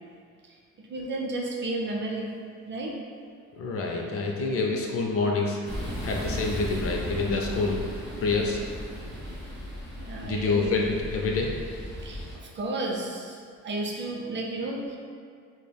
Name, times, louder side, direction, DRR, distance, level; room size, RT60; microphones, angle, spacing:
voice 1, 0.4-2.3 2.6-2.9 9.9-10.7 12.0-15.0, right 2 dB, 40° right, -1 dB, 0.4 m, -33 dB
voice 2, 3.6-5.7 6.0-7.8 8.2-8.6 10.2-11.5, left 3 dB, 50° left, 0 dB, 0.4 m, -27 dB
sound 1, 5.6-12.4, equal, ahead, 1.4 m, -36 dB
3.2 x 2.1 x 2.2 m, 2.2 s
cardioid pair, 90°, 30 cm